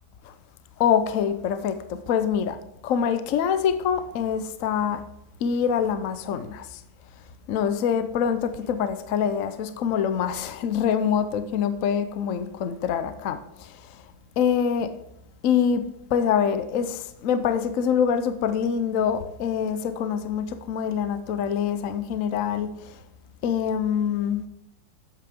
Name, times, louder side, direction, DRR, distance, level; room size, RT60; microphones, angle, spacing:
voice 1, 0.8-2.6 2.8-5.0 5.4-6.8 7.5-14.0 14.4-14.9 15.4-15.8 16.1-23.0 23.4-24.4, left 7 dB, 60° left, 1.0 m, -25 dB
12.5 x 8.4 x 3.6 m
omnidirectional pair, 1.9 m